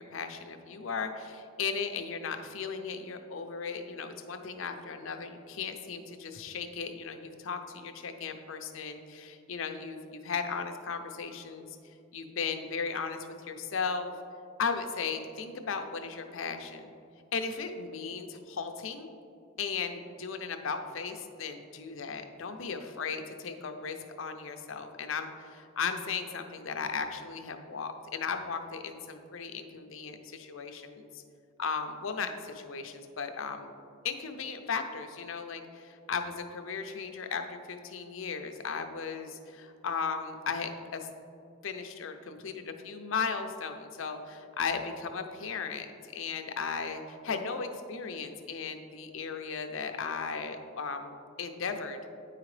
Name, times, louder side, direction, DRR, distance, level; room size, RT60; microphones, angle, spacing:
voice 1, 0.0-11.7 12.1-14.1 14.6-16.9 17.3-19.1 19.6-31.2 31.6-33.7 34.0-41.1 41.6-52.0, left 5 dB, 70° left, 6 dB, 0.6 m, -36 dB
9.2 x 4.8 x 3.2 m, 2.5 s
head